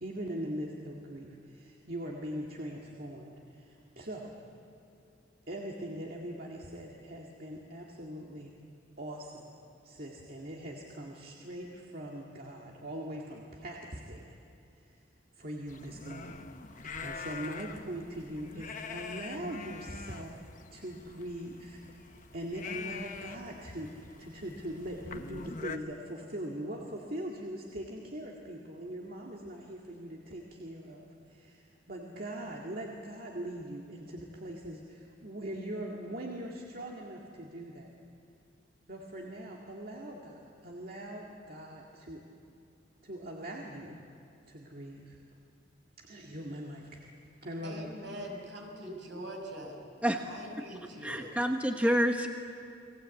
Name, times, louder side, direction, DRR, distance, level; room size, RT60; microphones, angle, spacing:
voice 1, 0.0-4.3 5.5-8.5 9.0-9.5 9.8-14.4 14.9-15.0 15.4-20.3 20.7-37.9 38.9-42.2 43.0-44.0 44.5-45.2 46.0-47.1 47.4-48.0, right 1 dB, 55° right, -1 dB, 2.1 m, -41 dB
sound 1, 15.7-25.8, left 5 dB, 45° left, 1.1 m, -44 dB
voice 2, 47.6-49.8 50.2-51.3, equal, 75° right, 1 dB, 6.0 m, -43 dB
voice 3, 51.0-52.3, equal, 10° right, 3 dB, 1.1 m, -28 dB
30.0 x 21.0 x 8.3 m, 2.6 s
head